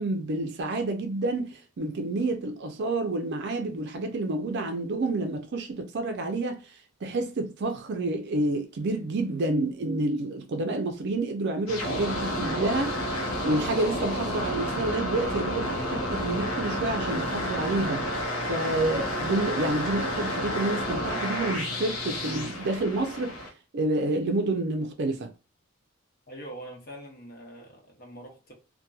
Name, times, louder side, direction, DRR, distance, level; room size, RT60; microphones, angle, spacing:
voice 1, 0.0-25.3, right 2 dB, 50° right, 0.4 m, -29 dB
sound 1, 11.7-23.5, equal, 75° left, 0.7 m, -30 dB
voice 2, 26.3-28.5, right 1 dB, 45° left, 0.9 m, -43 dB
2.8 x 2.2 x 2.3 m
head